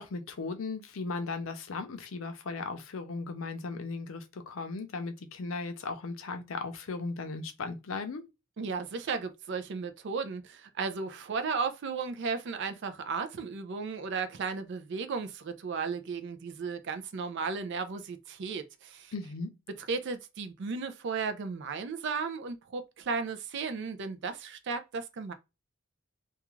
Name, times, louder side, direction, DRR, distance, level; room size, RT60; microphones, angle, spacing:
voice 1, 0.0-8.2 19.1-19.5, left 3 dB, 75° left, 0.5 m, -37 dB
voice 2, 8.6-19.1 19.8-25.3, right 5 dB, 60° right, 0.4 m, -35 dB
2.3 x 2.3 x 3.0 m
head